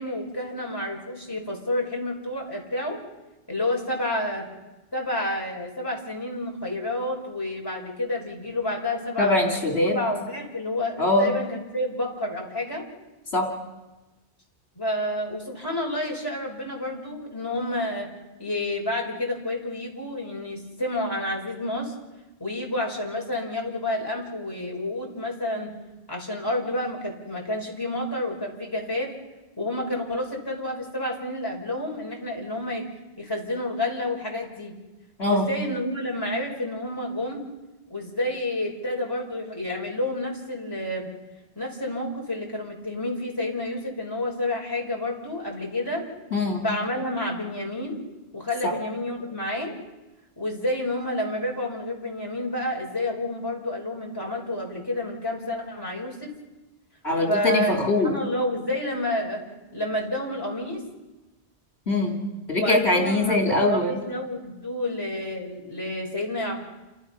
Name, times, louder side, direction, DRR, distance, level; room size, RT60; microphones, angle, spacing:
voice 1, 0.0-3.0 3.5-4.5 4.9-9.3 9.8-12.9 14.8-18.1 18.4-21.9 22.4-25.8 26.1-29.1 29.6-32.9 33.2-34.8 35.2-37.5 37.9-41.1 41.6-46.1 46.6-48.0 48.3-49.8 50.4-56.3 57.3-59.5 59.7-60.8 62.6-66.6, left 1 dB, 20° left, -1 dB, 5.2 m, -29 dB
voice 2, 9.2-10.1 11.0-11.3 13.3-13.5 35.2-35.5 46.3-46.7 48.6-48.7 57.0-58.1 61.9-62.2 62.5-64.0, left 2 dB, 70° left, 0 dB, 3.3 m, -22 dB
29.0 x 27.0 x 5.7 m, 1.1 s
omnidirectional pair, 1.1 m